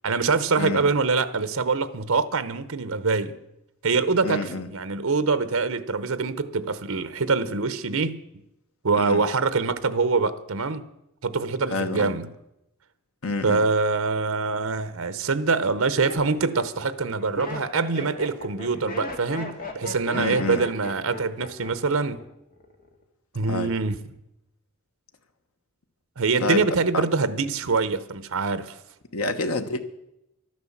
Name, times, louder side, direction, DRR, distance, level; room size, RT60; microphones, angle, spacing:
voice 1, 0.0-3.4 3.8-8.2 8.8-10.8 11.2-12.3 13.4-22.2 23.3-24.0 26.2-28.8, right 4 dB, 75° right, 0.8 m, -24 dB
voice 2, 4.2-4.7 9.0-9.2 11.7-12.1 13.2-13.6 20.1-20.6 23.5-23.7 26.4-26.6 26.9-27.0 29.1-29.8, left 3 dB, 90° left, 1.2 m, -28 dB
Laughter, 14.9-15.0 15.6-22.2 22.5-23.0, left 1 dB, 40° left, 1.9 m, -37 dB
12.0 x 10.5 x 7.3 m
head